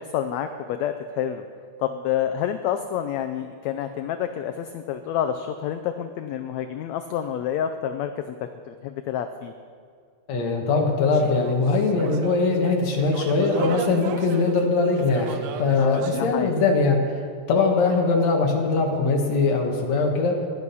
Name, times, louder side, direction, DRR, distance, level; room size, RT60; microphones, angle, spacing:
voice 1, 0.0-1.4 1.8-8.3 8.7-9.5 15.8-16.5, left 9 dB, 75° left, 8 dB, 1.7 m, -28 dB
voice 2, 10.3-17.2 17.5-20.4, left 3 dB, 60° left, 1 dB, 2.7 m, -21 dB
sound 1, 11.1-16.2, right 8 dB, 80° right, 2.3 m, -35 dB
16.0 x 11.5 x 5.6 m, 2.1 s
omnidirectional pair, 3.6 m